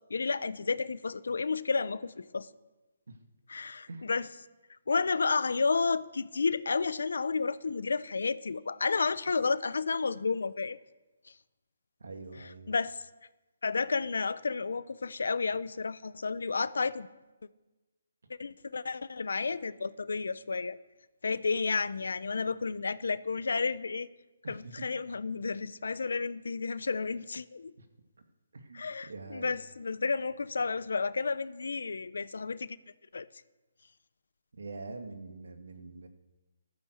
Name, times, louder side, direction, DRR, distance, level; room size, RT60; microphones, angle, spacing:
voice 1, 0.1-2.5 3.5-4.3 4.9-10.8 12.7-13.0 13.6-17.1 18.4-20.8 21.2-24.1 24.5-27.7 28.7-32.8 33.1-33.3, left 4 dB, 75° left, 17 dB, 0.8 m, -31 dB
voice 2, 12.0-12.7 24.4-24.8 27.8-27.9 28.5-29.5 34.6-36.1, right 3 dB, 75° right, 6 dB, 2.4 m, -44 dB
15.0 x 13.5 x 6.5 m, 1.1 s
hypercardioid pair, 155°, 0 cm